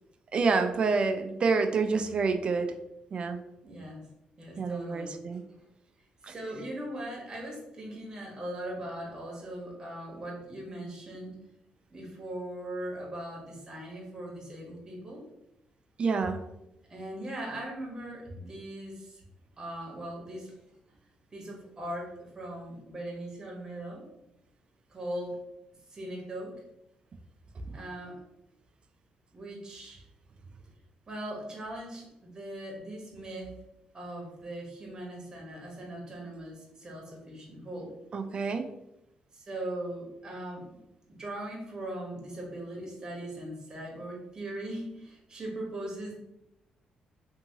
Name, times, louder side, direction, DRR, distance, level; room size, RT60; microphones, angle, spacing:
voice 1, 0.3-2.7 3.1-3.4 4.6-5.4 6.2-6.3 16.0-16.4 27.6-27.8 38.1-38.7, right 4 dB, 40° right, 7 dB, 0.3 m, -28 dB
voice 2, 3.6-4.1 4.4-5.2 6.3-11.4 11.9-15.2 16.9-19.2 19.6-20.5 21.3-24.1 24.9-25.4 25.9-26.5 27.7-28.2 29.3-30.0 31.1-33.5 33.9-38.0 39.3-40.7 41.1-46.2, right 1 dB, 25° right, -2 dB, 1.0 m, -39 dB
2.8 x 2.7 x 2.7 m, 0.84 s
cardioid pair, 120°, 3 cm